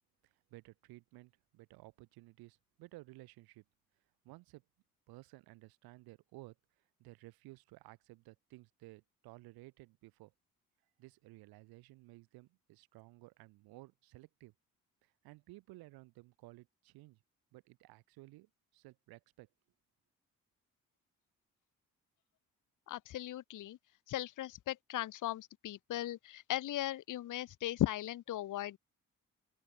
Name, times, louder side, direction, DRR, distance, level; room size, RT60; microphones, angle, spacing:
voice 1, 0.2-3.6 4.2-4.6 5.1-6.6 7.0-10.3 11.0-14.5 15.0-17.2 17.5-19.5, right 21 dB, 90° right, 2.7 m, -56 dB
voice 2, 22.9-23.8 24.1-28.8, left 13 dB, 60° left, 0.7 m, -37 dB
open air
supercardioid pair, 50°, 36 cm